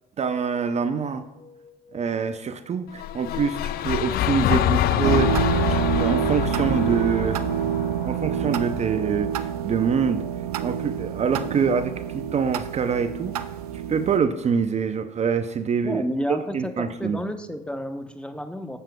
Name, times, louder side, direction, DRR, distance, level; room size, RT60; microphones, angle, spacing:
voice 1, 0.2-1.2 1.9-7.4 8.0-10.2 10.6-13.5 13.9-17.2, right 6 dB, 35° right, 10 dB, 0.6 m, -25 dB
sound 1, 1.0-16.6, left 4 dB, 30° left, 2.0 m, -55 dB
sound 2, 2.9-9.1, left 11 dB, 55° left, 0.4 m, -26 dB
sound 3, 5.0-14.2, right 9 dB, 90° right, 0.4 m, -27 dB
voice 2, 15.8-18.8, equal, 5° left, 7 dB, 0.9 m, -31 dB
12.0 x 7.3 x 2.3 m, 0.96 s
hypercardioid pair, 60°, 19 cm